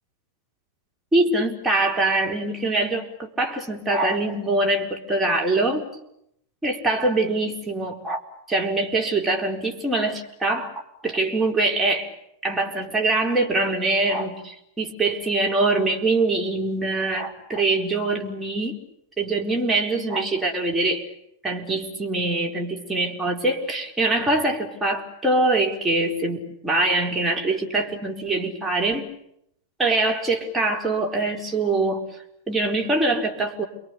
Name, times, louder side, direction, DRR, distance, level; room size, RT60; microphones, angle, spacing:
voice 1, 1.1-5.8 6.6-8.2 8.5-10.7 11.0-12.1 12.4-18.8 19.2-21.1 21.4-29.1 29.8-32.1 32.5-33.6, right 2 dB, 10° right, -1 dB, 4.4 m, -23 dB
29.5 x 22.5 x 8.5 m, 0.77 s
figure-of-eight pair, 90°, 0 cm